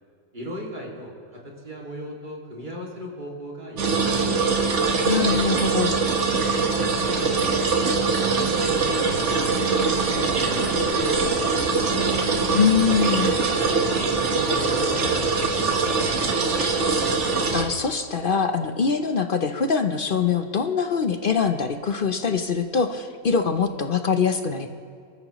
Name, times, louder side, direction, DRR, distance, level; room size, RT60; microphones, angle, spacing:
voice 1, 0.3-4.7 6.4-12.2 14.0-16.6, equal, 30° right, -2 dB, 2.4 m, -38 dB
sound 1, 3.8-17.6, right 4 dB, 55° right, 1.5 m, -22 dB
voice 2, 5.0-5.9 12.5-13.3 17.5-24.7, left 6 dB, 50° left, 8 dB, 0.7 m, -23 dB
23.0 x 13.5 x 3.0 m, 2.3 s
omnidirectional pair, 1.6 m